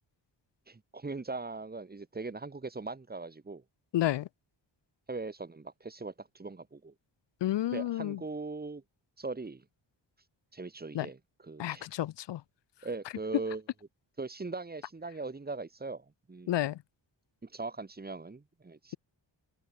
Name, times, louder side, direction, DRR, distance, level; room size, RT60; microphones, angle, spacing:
voice 1, 0.7-3.6 5.1-6.9 7.7-8.8 9.2-9.6 10.5-11.9 12.8-13.6 14.2-16.6 17.4-19.0, right 3 dB, 20° right, 1.5 m, -40 dB
voice 2, 3.9-4.3 7.4-8.2 10.9-11.1 11.6-12.4 16.5-16.8, left 13 dB, 65° left, 0.6 m, -30 dB
wide cardioid pair, 160°, 45 cm